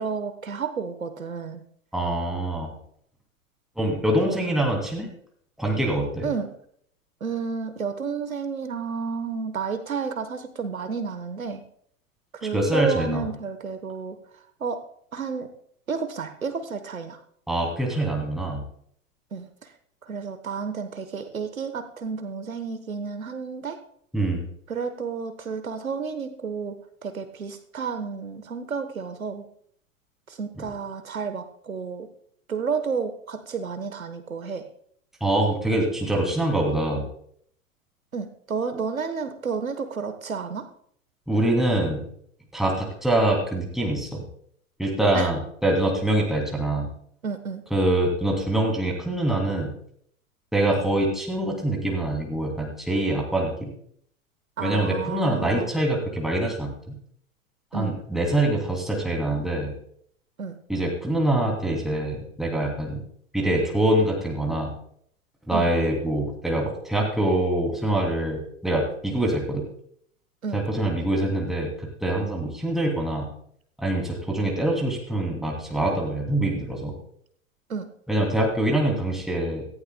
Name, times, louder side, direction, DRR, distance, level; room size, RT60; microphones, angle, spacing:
voice 1, 0.0-1.6 4.2-4.4 6.2-6.5 7.2-11.6 12.3-14.8 15.1-15.5 15.9-17.2 19.3-19.7 20.0-23.8 24.7-29.4 30.3-32.1 32.5-34.7 38.1-40.7 45.1-45.3 47.2-47.6 54.6-55.7 57.7-58.0 60.4-60.6 65.5-65.7 70.4-70.6 77.7-77.9, right 5 dB, 80° right, 9 dB, 1.2 m, -31 dB
voice 2, 1.9-2.8 3.8-5.1 5.6-6.3 12.5-13.2 17.5-18.6 24.1-24.4 35.2-37.1 41.3-42.0 42.5-44.2 44.8-46.9 47.7-49.7 50.5-53.7 54.6-57.0 57.7-59.7 60.7-63.0 63.3-64.7 65.5-69.7 70.5-73.3 73.8-77.0 78.1-79.7, right 1 dB, ahead, 0 dB, 2.7 m, -24 dB
17.5 x 14.5 x 2.2 m, 0.65 s
figure-of-eight pair, 100°, 41 cm